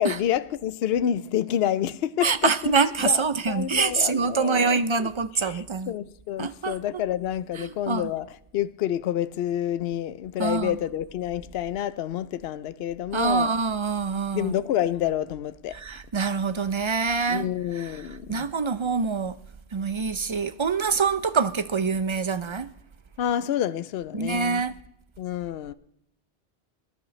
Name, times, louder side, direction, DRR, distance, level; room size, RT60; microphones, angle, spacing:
voice 1, 0.0-2.7 3.0-5.1 5.4-8.3 8.5-13.5 14.3-15.8 17.3-18.5 23.2-24.7 25.2-25.7, left 11 dB, 70° left, 0.8 m, -28 dB
voice 2, 2.2-5.9 6.4-6.8 7.6-8.1 10.4-10.8 13.1-14.5 15.7-17.5 17.8-18.0 18.3-19.4 19.7-22.7 24.1-24.8, right 5 dB, 40° right, 0.4 m, -25 dB
20.5 x 10.5 x 3.1 m
omnidirectional pair, 1.1 m